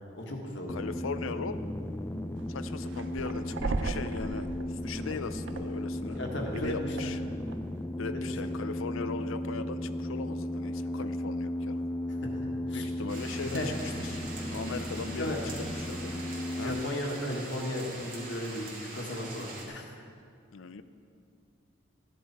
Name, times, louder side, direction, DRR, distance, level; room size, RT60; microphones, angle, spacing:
voice 1, 0.1-0.8 6.1-7.1 8.1-8.4 12.1-12.3 12.7-12.8 13.4-13.7 15.2-15.4 16.6-18.7 18.9-19.9, left 1 dB, 65° left, 0 dB, 1.7 m, -35 dB
voice 2, 0.7-1.6 2.5-6.2 6.5-7.2 8.0-11.8 12.7-13.6 14.0-14.2 14.5-15.4 15.7-16.3 16.6-16.8 20.5-20.8, left 4 dB, 85° left, 12 dB, 0.6 m, -39 dB
sound 1, 0.7-16.8, left 1 dB, 10° left, 0.4 m, -35 dB
sound 2, 2.4-7.7, right 3 dB, 65° right, 0.5 m, -38 dB
sound 3, 13.1-19.7, right 2 dB, 45° right, 2.1 m, -43 dB
14.0 x 10.5 x 4.3 m, 2.3 s
head